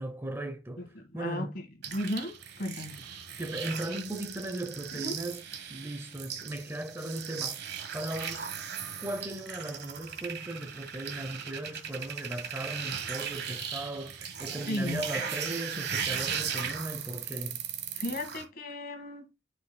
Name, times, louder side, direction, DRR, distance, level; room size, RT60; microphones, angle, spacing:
voice 1, 0.0-1.6 3.0-3.1 3.4-5.4 5.7-7.6 7.9-8.6 9.0-17.6, right 1 dB, 15° right, 0.7 m, -37 dB
voice 2, 0.8-3.0 4.9-5.2 14.7-15.0 18.0-19.3, left 1 dB, 50° left, 1.7 m, -35 dB
sound 1, 1.8-18.4, right 7 dB, 60° right, 1.2 m, -37 dB
9.9 x 5.4 x 2.2 m
head